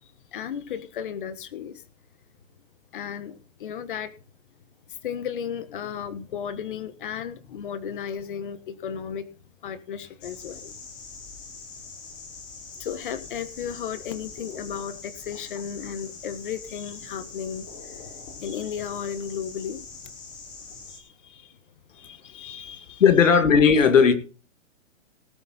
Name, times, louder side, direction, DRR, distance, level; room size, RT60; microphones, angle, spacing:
voice 1, 0.0-1.8 2.9-4.1 4.9-9.3 9.6-10.8 12.8-17.9 18.3-19.8 20.9-21.6 21.9-23.0, left 8 dB, 40° left, 13 dB, 1.3 m, -34 dB
sound 1, 10.2-21.0, left 4 dB, 5° left, 0.6 m, -43 dB
voice 2, 23.0-24.1, left 6 dB, 75° left, 10 dB, 2.3 m, -16 dB
18.0 x 7.4 x 4.3 m, 0.36 s
hypercardioid pair, 170°, 39 cm